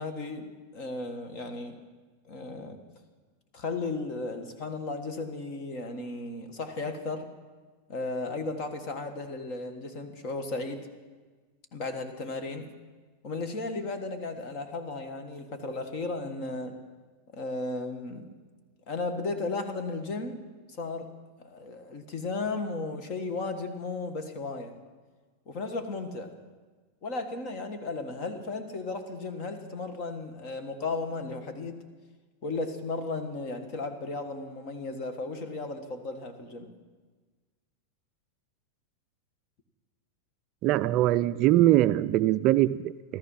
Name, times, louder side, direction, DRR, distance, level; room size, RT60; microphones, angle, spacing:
voice 1, 0.0-1.8 2.3-2.8 3.5-7.3 7.9-10.9 11.7-12.7 13.2-16.7 17.3-18.3 18.9-20.4 20.8-21.1 21.4-24.7 25.5-26.3 27.0-31.8 32.4-36.7, left 3 dB, 40° left, 7 dB, 1.6 m, -35 dB
voice 2, 40.6-43.2, right 14 dB, 40° right, 13 dB, 0.3 m, -22 dB
14.5 x 13.5 x 5.6 m, 1.4 s
supercardioid pair, 150°, 0 cm